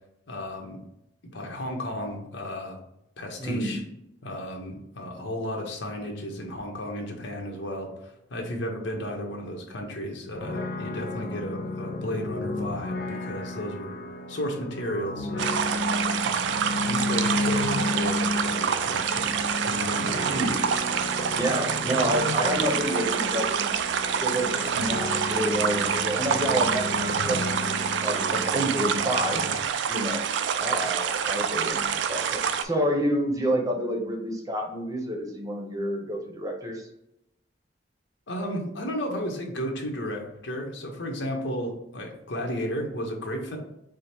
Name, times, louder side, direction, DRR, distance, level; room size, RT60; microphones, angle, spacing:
voice 1, 0.3-0.8 1.3-2.8 3.2-3.8 4.2-13.9 14.3-15.6 16.2-16.5 16.8-19.3 19.6-20.5 38.3-43.6, equal, 80° left, 2 dB, 0.9 m, -33 dB
voice 2, 3.4-3.8 20.2-20.6 21.3-23.7 24.2-29.5 29.9-30.2 30.6-36.8, equal, 20° right, 2 dB, 0.7 m, -29 dB
sound 1, 10.4-29.6, left 2 dB, 55° left, 0.5 m, -33 dB
sound 2, 15.4-32.6, right 7 dB, 70° right, 0.3 m, -27 dB
4.9 x 2.0 x 4.3 m, 0.82 s
head